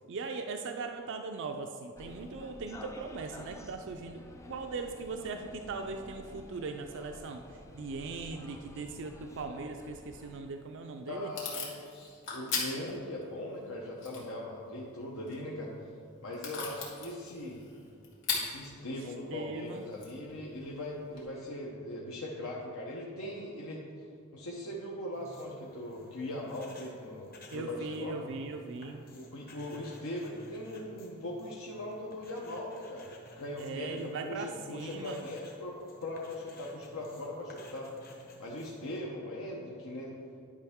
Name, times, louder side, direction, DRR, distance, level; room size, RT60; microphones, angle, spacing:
voice 1, 0.1-4.2 4.5-7.4 7.7-11.3 19.0-19.1 19.3-19.9 27.5-29.1 33.6-35.2, right 4 dB, 60° right, 5 dB, 0.4 m, -39 dB
sound 1, 2.0-10.4, left 1 dB, 15° left, 0.5 m, -50 dB
Packing tape duct tape / Tearing, 10.4-21.2, left 5 dB, 65° left, 2.0 m, -42 dB
voice 2, 11.1-15.7 16.2-17.6 18.3-23.8 24.3-28.2 29.1-37.9 38.4-40.1, left 1 dB, 80° left, -4 dB, 1.0 m, -40 dB
sound 2, 25.1-39.0, left 1 dB, 45° left, 1.2 m, -55 dB
10.5 x 5.5 x 3.6 m, 2.3 s
head